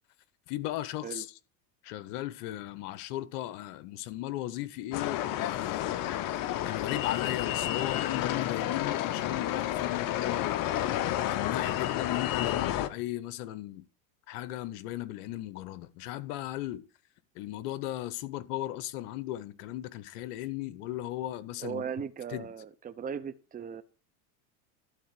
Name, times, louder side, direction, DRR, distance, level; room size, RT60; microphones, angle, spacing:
voice 1, 0.5-1.4 1.8-6.2 6.6-10.5 11.2-13.8 14.3-16.8 17.3-21.9 22.3-22.5, left 14 dB, 65° left, 1.2 m, -36 dB
sound 1, 4.9-12.9, left 12 dB, 45° left, 0.9 m, -30 dB
voice 2, 21.6-23.8, right 7 dB, 15° right, 0.8 m, -37 dB
12.0 x 4.2 x 7.5 m
supercardioid pair, 105°, 49 cm